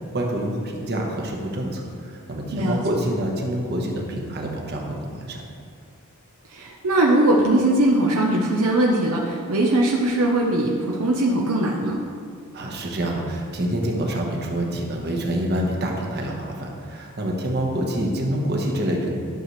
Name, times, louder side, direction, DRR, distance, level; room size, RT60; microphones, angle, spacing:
voice 1, 0.1-5.4 12.5-19.2, right 1 dB, 45° right, 0 dB, 1.2 m, -26 dB
voice 2, 2.5-2.8 6.5-12.0, right 1 dB, 75° right, -2 dB, 0.8 m, -20 dB
11.5 x 6.6 x 3.2 m, 2.3 s
head